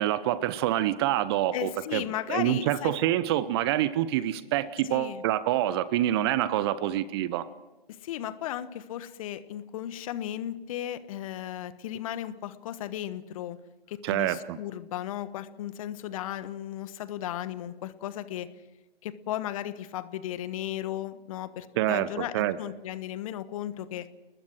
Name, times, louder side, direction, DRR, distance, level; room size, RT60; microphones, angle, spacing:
voice 1, 0.0-2.0 2.3-7.5 14.0-14.6 21.8-22.1 22.3-22.6, right 13 dB, 25° right, 16 dB, 0.8 m, -26 dB
voice 2, 1.5-2.9 4.8-5.2 7.9-13.6 13.9-18.5 19.0-24.1, left 12 dB, 35° left, 14 dB, 1.2 m, -35 dB
30.0 x 20.0 x 6.3 m, 1.1 s
figure-of-eight pair, 130°, 31 cm